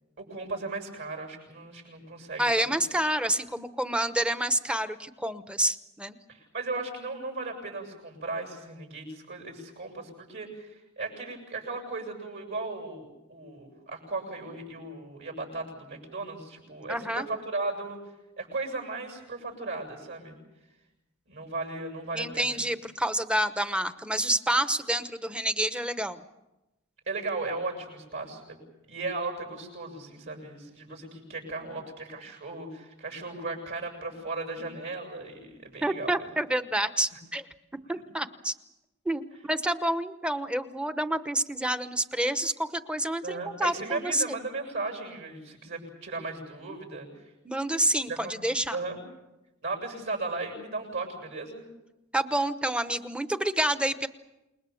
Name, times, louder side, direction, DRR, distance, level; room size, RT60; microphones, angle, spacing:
voice 1, 0.2-2.8 6.3-18.0 18.4-20.4 21.3-22.6 27.1-28.6 28.9-36.3 37.1-37.2 43.2-47.2 48.1-49.0 49.6-51.6, right 3 dB, 65° right, 2 dB, 7.6 m, -36 dB
voice 2, 2.4-6.2 16.9-17.3 22.1-26.2 35.8-37.5 37.9-38.5 39.0-44.4 47.4-48.8 52.1-54.1, right 1 dB, 5° right, 10 dB, 0.9 m, -28 dB
28.5 x 21.0 x 7.1 m, 0.96 s
head